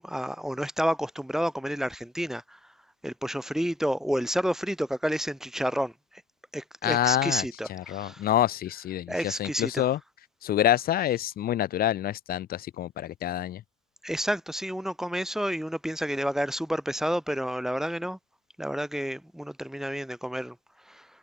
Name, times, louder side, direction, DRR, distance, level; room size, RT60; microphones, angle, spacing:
voice 1, 0.0-2.6 3.0-5.9 6.5-8.3 9.1-9.9 14.0-18.2 18.6-20.6 20.9-21.1, equal, 5° right, 2.5 m, -30 dB
voice 2, 6.8-7.4 7.7-10.0 10.4-13.6, left 12 dB, 60° left, 2.0 m, -27 dB
cardioid pair, 110°, 17 cm